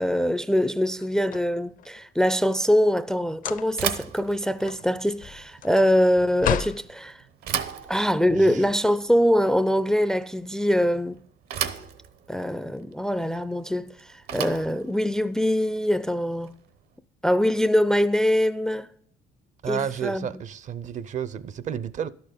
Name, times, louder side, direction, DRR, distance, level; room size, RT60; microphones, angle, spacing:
voice 1, 0.0-7.2 7.9-11.2 12.3-16.5 17.2-18.9 19.7-20.3, equal, 5° left, 0.4 m, -23 dB
sound 1, 0.9-2.1 3.3-4.0 4.3-6.8, left 9 dB, 55° left, 0.5 m, -32 dB
Bicycle / Thump thud, 3.7-16.8, right 9 dB, 70° right, 0.9 m, -37 dB
voice 2, 8.3-8.7 19.6-22.1, right 8 dB, 45° right, 0.5 m, -32 dB
11.5 x 6.7 x 5.1 m
cardioid pair, 110°, 17 cm